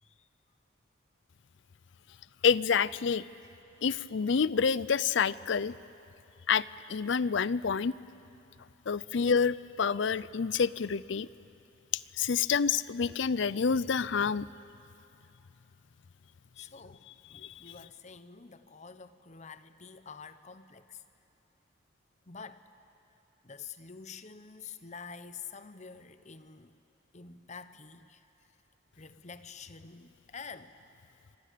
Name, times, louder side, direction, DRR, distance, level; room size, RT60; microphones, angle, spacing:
voice 1, 2.4-3.2 3.8-5.7 6.5-6.6 6.9-7.9 8.9-11.3 12.2-14.5 16.6-16.7 17.3-17.6, left 6 dB, 60° left, 19 dB, 0.5 m, -28 dB
voice 2, 16.6-21.0 22.3-22.6 23.4-26.8 27.1-28.3 29.0-30.7, left 5 dB, 35° left, 12 dB, 0.9 m, -48 dB
29.0 x 25.0 x 6.8 m, 2.8 s
head